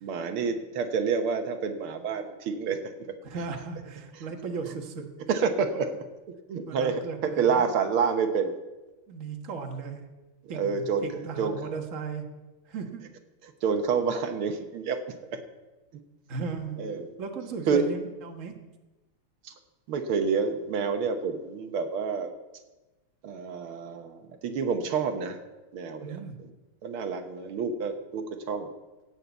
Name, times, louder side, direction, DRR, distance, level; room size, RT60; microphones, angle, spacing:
voice 1, 0.0-2.9 5.3-5.9 6.5-8.6 10.5-11.6 13.6-15.0 15.3-15.4 16.8-17.1 17.7-17.9 19.5-19.6 19.9-22.3 23.2-25.4 25.7-26.2 26.8-28.7, right 5 dB, 85° right, 6 dB, 1.9 m, -28 dB
voice 2, 3.2-5.1 6.7-7.6 9.1-10.0 10.5-12.2 12.7-13.0 16.3-16.8 17.2-18.6 26.0-26.3, right 5 dB, 40° right, 4 dB, 1.6 m, -36 dB
17.0 x 6.7 x 8.1 m, 1.1 s
omnidirectional pair, 2.3 m